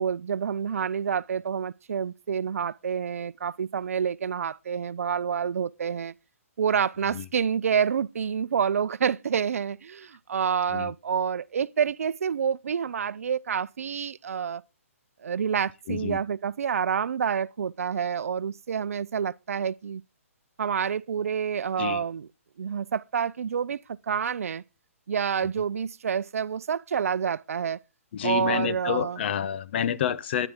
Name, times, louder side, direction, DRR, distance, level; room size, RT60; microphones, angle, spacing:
voice 1, 0.0-6.1 6.6-14.6 15.2-20.0 20.6-22.3 22.6-24.6 25.1-27.8 28.2-29.2, right 7 dB, 75° right, 0.5 m, -28 dB
voice 2, 15.9-16.2 21.8-22.0 28.1-30.5, left 9 dB, 45° left, 0.9 m, -29 dB
13.0 x 10.0 x 3.7 m
hypercardioid pair, 150°, 8 cm